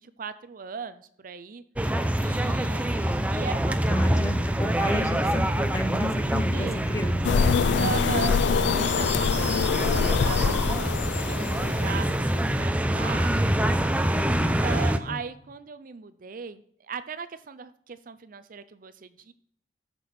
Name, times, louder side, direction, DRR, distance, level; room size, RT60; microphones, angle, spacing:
voice 1, 0.0-1.6 2.2-4.3 6.5-6.8 7.8-8.4 8.7-10.9 11.3-19.3, right 6 dB, 50° right, 13 dB, 0.5 m, -38 dB
sound 1, 1.8-15.0, right 1 dB, 10° right, 0.6 m, -26 dB
voice 2, 3.9-7.9 14.3-15.2, equal, 20° left, 7 dB, 1.0 m, -33 dB
sound 2, 7.2-12.3, left 6 dB, 85° left, 0.4 m, -25 dB
13.0 x 6.2 x 4.3 m, 0.64 s
head